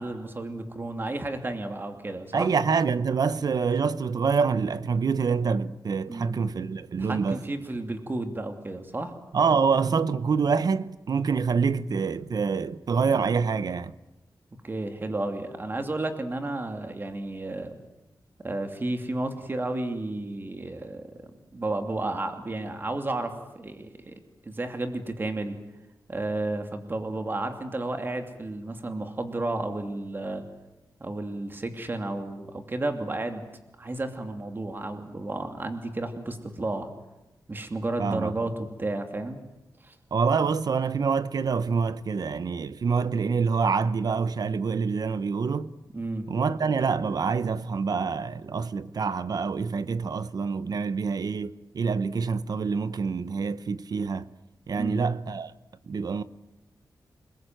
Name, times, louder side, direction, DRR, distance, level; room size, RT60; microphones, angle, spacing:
voice 1, 0.0-2.5 6.1-6.4 7.0-9.1 14.6-17.7 18.4-21.1 21.5-24.1 24.4-25.6 26.1-30.4 31.0-33.4 33.8-36.9 37.5-39.4 39.8-39.9 45.9-46.3 54.8-55.0, right 2 dB, 30° right, 2.7 m, -32 dB
voice 2, 2.3-7.4 9.3-13.9 38.0-38.3 40.1-45.7 46.3-54.3 54.7-55.5 55.9-56.2, right 5 dB, 60° right, 1.0 m, -26 dB
28.5 x 21.5 x 9.2 m
wide cardioid pair, 160°, 7 cm